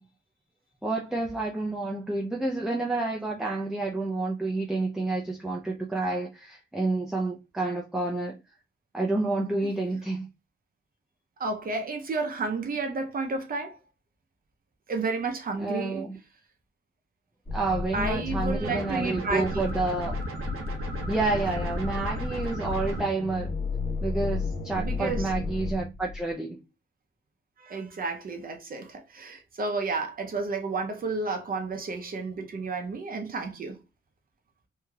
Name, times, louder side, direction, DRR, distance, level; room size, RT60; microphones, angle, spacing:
voice 1, 0.8-8.4 8.9-10.3 15.6-16.2 17.5-20.2 21.1-23.5 24.0-26.6, right 2 dB, ahead, 0.3 m, -29 dB
voice 2, 11.4-13.8 14.9-16.0 17.9-19.7 24.8-25.3 27.6-33.8, right 3 dB, 45° right, 0.6 m, -31 dB
sound 1, 17.5-26.3, left 3 dB, 30° left, 1.0 m, -33 dB
sound 2, 18.6-23.0, right 2 dB, 85° right, 0.9 m, -37 dB
3.1 x 2.7 x 2.3 m
wide cardioid pair, 160°, 21 cm